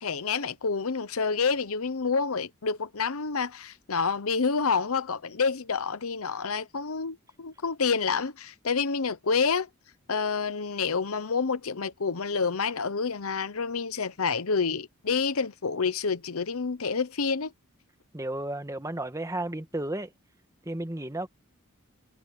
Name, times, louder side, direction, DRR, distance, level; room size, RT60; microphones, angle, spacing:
voice 1, 0.0-9.7 10.1-17.5, left 5 dB, 80° left, 0.9 m, -28 dB
voice 2, 18.1-20.1 20.6-21.3, right 1 dB, 15° right, 1.4 m, -33 dB
head